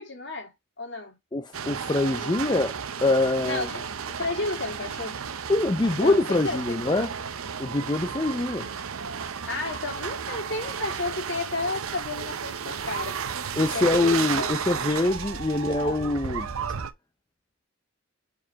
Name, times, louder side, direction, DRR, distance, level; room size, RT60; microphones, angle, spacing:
voice 1, 0.0-1.2 2.1-2.6 3.4-3.8 4.2-5.2 6.0-6.8 9.5-13.2 13.7-14.6 15.7-16.2, left 2 dB, 60° left, 2.3 m, -33 dB
voice 2, 1.3-3.7 5.5-7.1 7.6-8.7 13.6-16.5, left 2 dB, 20° left, 0.5 m, -24 dB
sound 1, 1.5-16.9, right 7 dB, 85° right, 0.7 m, -33 dB
4.9 x 4.9 x 4.6 m
head